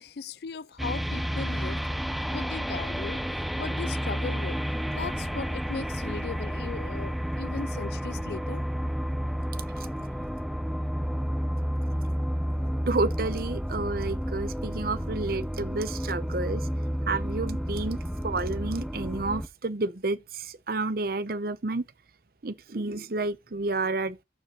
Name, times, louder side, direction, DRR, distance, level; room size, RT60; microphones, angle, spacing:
voice 1, 0.0-1.8 2.3-3.2 3.6-4.6 4.9-8.7, left 5 dB, 60° left, 0.4 m, -37 dB
Space Hanger, 0.8-19.5, equal, ahead, 0.5 m, -31 dB
voice 2, 12.9-16.7 17.1-21.8 22.4-24.2, right 3 dB, 55° right, 0.8 m, -30 dB
14.0 x 5.0 x 3.0 m
head